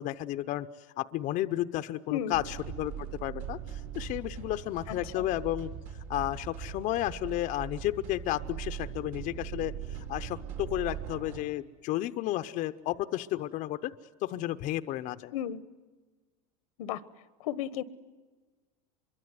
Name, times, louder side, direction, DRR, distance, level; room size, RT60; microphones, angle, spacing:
voice 1, 0.0-5.7 6.1-13.9 14.2-15.3, left 15 dB, 45° left, 10 dB, 0.7 m, -32 dB
sound 1, 2.3-11.4, right 8 dB, 70° right, 4.0 m, -40 dB
voice 2, 4.9-5.2 15.3-15.6 16.8-17.0 17.4-17.8, left 11 dB, 85° left, 17 dB, 1.2 m, -34 dB
25.5 x 23.5 x 9.4 m, 1.3 s
supercardioid pair, 130°, 18 cm